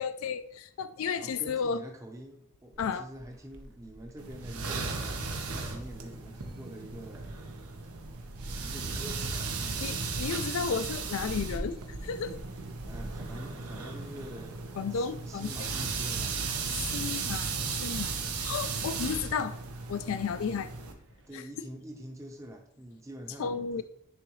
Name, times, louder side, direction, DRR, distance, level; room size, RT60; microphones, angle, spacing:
voice 1, 0.0-1.8 2.8-3.1 9.8-11.8 12.0-12.4 14.8-15.7 16.7-17.5 17.8-18.1 18.4-19.6 19.9-20.7 21.3-21.4 23.4-23.8, left 6 dB, 65° left, 12 dB, 0.3 m, -33 dB
voice 2, 1.1-7.4 8.6-10.2 12.9-16.4 20.5-20.7 21.3-23.8, equal, 15° right, 2 dB, 0.7 m, -46 dB
sound 1, 2.7-21.3, right 1 dB, 60° right, 0.8 m, -48 dB
sound 2, 4.2-20.9, right 4 dB, 85° right, 1.0 m, -36 dB
9.8 x 3.8 x 3.1 m, 0.68 s
head